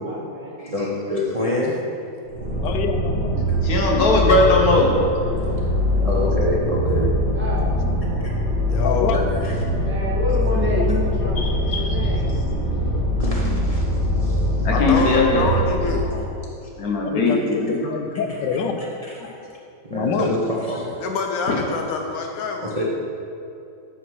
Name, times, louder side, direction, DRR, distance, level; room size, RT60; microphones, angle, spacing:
voice 1, 0.0-0.5 7.3-7.7 9.8-12.7, equal, 5° right, -6 dB, 1.3 m, -29 dB
voice 2, 0.6-1.7 6.0-7.1 9.1-9.5 13.2-14.4 14.9-15.0 19.9-20.9 22.6-22.8, left 1 dB, 75° right, -5 dB, 0.3 m, -26 dB
sound 1, 2.3-16.0, equal, 40° right, 1.5 m, -22 dB
voice 3, 2.6-3.5 8.8-9.2 17.0-18.9 19.9-20.4, left 6 dB, 70° left, 6 dB, 1.2 m, -26 dB
voice 4, 3.6-5.0 8.1-8.2 11.4-11.9 12.2-12.8 14.6-15.5 16.0-16.2 16.8-17.8 21.5-21.6, left 2 dB, 55° left, -1 dB, 1.3 m, -20 dB
voice 5, 8.7-9.2 14.7-16.0 21.0-22.8, left 4 dB, 90° left, 3 dB, 0.7 m, -26 dB
8.3 x 5.8 x 4.7 m, 2.7 s
omnidirectional pair, 2.2 m